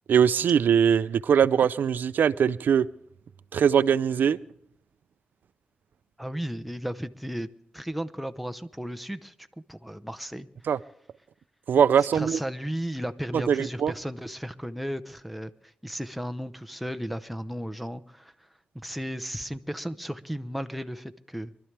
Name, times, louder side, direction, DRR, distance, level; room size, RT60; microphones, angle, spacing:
voice 1, 0.1-2.9 3.5-4.4 10.7-10.8 11.7-12.4 13.3-13.9, right 8 dB, 75° right, 16 dB, 0.5 m, -21 dB
voice 2, 6.2-7.5 7.7-9.3 9.7-10.5 12.0-18.5 18.8-21.5, equal, ahead, 9 dB, 0.8 m, -35 dB
24.0 x 12.5 x 3.4 m, 0.69 s
cardioid pair, 85°, 3 cm